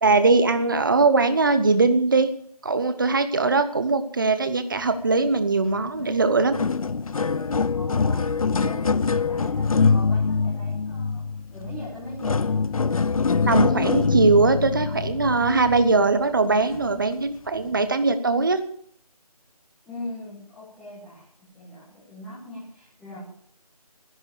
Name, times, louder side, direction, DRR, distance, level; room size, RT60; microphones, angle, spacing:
voice 1, 0.0-2.3 2.6-6.5 13.5-18.6, right 3 dB, 35° right, 10 dB, 1.0 m, -21 dB
sound 1, 6.0-6.1 6.4-16.1 16.7-16.9 17.7-17.8, left 4 dB, 60° left, 0.5 m, -24 dB
voice 2, 7.7-11.2 11.5-12.6 19.8-23.2, left 1 dB, 5° left, -10 dB, 1.4 m, -40 dB
12.0 x 11.0 x 6.7 m, 0.64 s
figure-of-eight pair, 170°, 20 cm